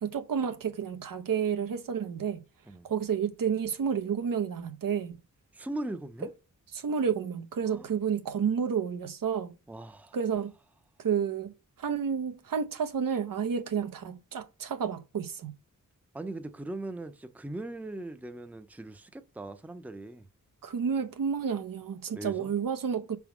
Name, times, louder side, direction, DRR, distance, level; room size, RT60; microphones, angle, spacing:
voice 1, 0.0-2.4 2.8-5.2 6.7-9.5 10.1-10.5 11.0-11.5 11.8-15.5 20.6-23.2, right 7 dB, 85° right, 0.9 m, -30 dB
voice 2, 5.5-6.3 7.6-7.9 9.7-10.2 16.1-20.3 22.1-22.5, right 2 dB, 5° right, 0.5 m, -39 dB
6.1 x 3.6 x 5.8 m
wide cardioid pair, 145°, 32 cm